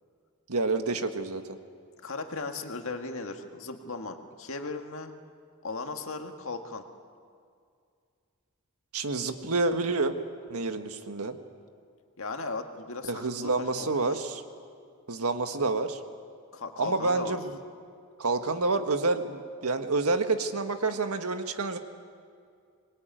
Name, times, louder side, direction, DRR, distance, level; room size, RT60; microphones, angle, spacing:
voice 1, 0.5-1.4 8.9-10.1 10.5-11.4 13.0-14.4 15.1-16.0 16.8-17.5 18.2-21.8, right 3 dB, 80° right, 7 dB, 1.7 m, -28 dB
voice 2, 2.0-5.1 5.6-6.8 12.2-14.0 16.5-17.4, left 3 dB, 65° left, 5 dB, 2.0 m, -37 dB
25.5 x 21.5 x 9.2 m, 2.3 s
head